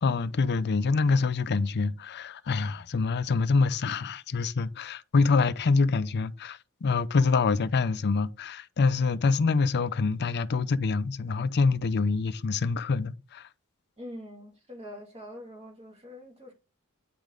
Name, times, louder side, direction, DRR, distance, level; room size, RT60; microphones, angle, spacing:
voice 1, 0.0-13.5, left 4 dB, 50° left, 0.5 m, -26 dB
voice 2, 14.0-16.5, equal, 30° right, 2.3 m, -44 dB
9.3 x 5.1 x 3.8 m
head